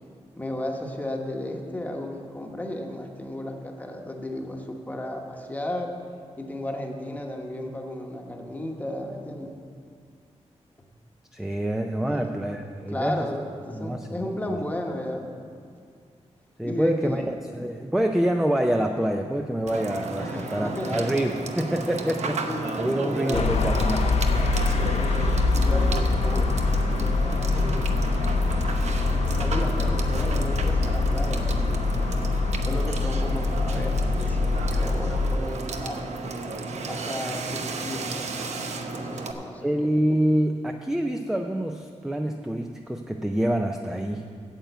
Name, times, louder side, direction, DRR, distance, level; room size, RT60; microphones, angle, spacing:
voice 1, 0.4-6.0 6.4-9.5 12.0-12.3 12.9-13.4 13.6-15.3 16.6-17.3 20.2-21.3 22.4-23.5 24.8-28.0 29.3-32.1 32.6-36.2 36.9-38.1 38.9-39.7, left 1 dB, 15° left, 2 dB, 1.0 m, -34 dB
voice 2, 11.3-13.2 13.8-14.1 16.6-22.4 22.8-24.1 39.6-44.2, right 1 dB, 5° right, 4 dB, 0.4 m, -26 dB
Water / Water tap faucet / Sink (filling or washing), 19.7-39.3, right 3 dB, 75° right, 0.8 m, -33 dB
sound 1, 23.3-35.4, left 3 dB, 70° left, 0.7 m, -24 dB
8.9 x 7.8 x 8.0 m, 2.2 s
wide cardioid pair, 170°, 12 cm